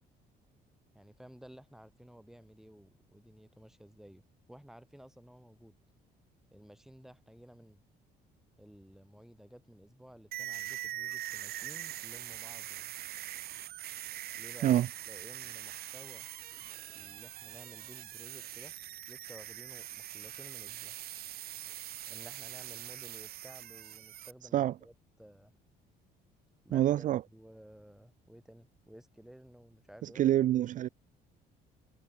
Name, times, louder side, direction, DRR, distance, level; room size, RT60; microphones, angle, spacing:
voice 1, 0.9-4.2 4.5-5.7 6.5-7.8 8.6-12.9 14.3-14.8 15.1-16.3 16.9-18.7 19.1-21.0 22.1-25.5 26.6-30.4, equal, ahead, 4.9 m, -54 dB
sound 1, 10.3-24.3, right 14 dB, 65° right, 1.3 m, -43 dB
voice 2, 26.7-27.2 30.2-30.9, right 12 dB, 50° right, 0.4 m, -26 dB
cardioid pair, 110°, 17 cm